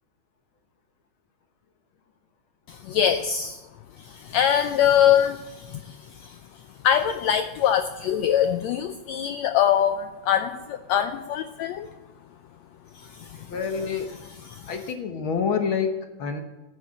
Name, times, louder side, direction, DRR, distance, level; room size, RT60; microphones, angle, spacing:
voice 1, 2.7-3.6 4.0-6.4 6.8-11.9 12.9-13.4 14.4-14.7, left 9 dB, 85° left, 9 dB, 1.5 m, -23 dB
voice 2, 13.4-14.1 14.7-16.4, left 6 dB, 60° left, 6 dB, 1.4 m, -27 dB
14.5 x 9.6 x 8.7 m, 1.1 s
omnidirectional pair, 3.8 m